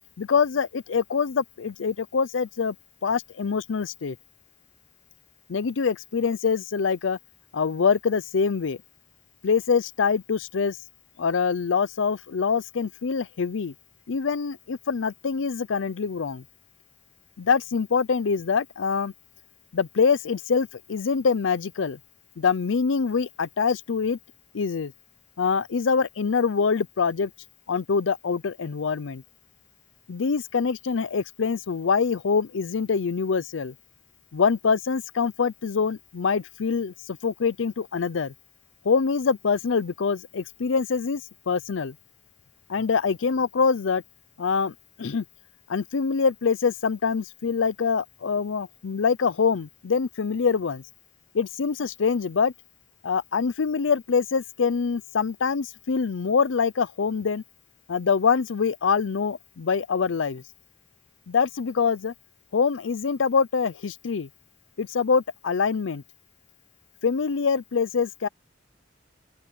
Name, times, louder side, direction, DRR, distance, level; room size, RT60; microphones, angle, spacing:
voice 1, 0.2-2.8 3.0-4.2 5.5-7.2 7.5-8.8 9.4-10.8 11.2-13.7 14.1-16.4 17.4-19.1 19.7-22.0 22.4-24.2 24.5-24.9 25.4-27.3 27.7-29.2 30.1-33.7 34.3-38.3 38.8-41.2 41.5-41.9 42.7-44.0 44.4-45.2 45.7-50.8 51.3-52.5 53.0-57.4 57.9-60.4 61.3-62.1 62.5-64.3 64.8-66.0 67.0-68.3, left 5 dB, 75° left, 0.5 m, -24 dB
open air
head